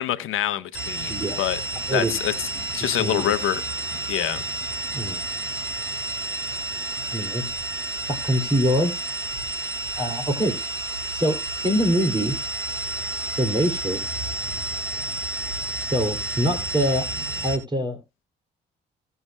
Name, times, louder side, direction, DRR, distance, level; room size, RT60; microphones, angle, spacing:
voice 1, 0.0-1.6 1.9-2.3 2.7-3.6 4.1-4.4, left 12 dB, 75° left, 1.0 m, -25 dB
sound 1, 0.7-17.6, right 2 dB, 75° right, 2.6 m, -30 dB
voice 2, 2.8-3.3 4.9-5.2 7.1-7.5 8.1-9.0 10.0-10.6 11.1-12.4 13.4-14.0 15.9-17.1 17.4-18.0, equal, 20° right, 2.9 m, -24 dB
17.5 x 6.9 x 2.2 m
supercardioid pair, 60°, 21 cm